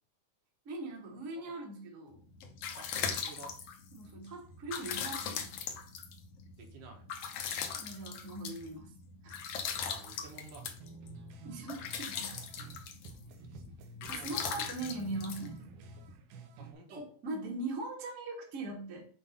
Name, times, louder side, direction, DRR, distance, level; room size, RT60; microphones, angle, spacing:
voice 1, 0.6-2.2 3.9-5.5 7.8-8.9 9.2-9.3 11.4-12.4 14.1-15.6 16.9-19.1, right 2 dB, 45° right, -1 dB, 1.0 m, -40 dB
sound 1, 2.2-16.1, left 7 dB, 80° left, 1.3 m, -40 dB
voice 2, 2.8-3.5 6.6-7.0 9.7-10.7 13.4-13.7 14.0-14.7 16.6-17.0, right 3 dB, 70° right, 1 dB, 2.7 m, -52 dB
sound 2, 10.6-12.8 13.0-16.7, right 3 dB, 85° right, 2.5 m, -50 dB
7.8 x 2.7 x 5.1 m, 0.41 s
omnidirectional pair, 3.9 m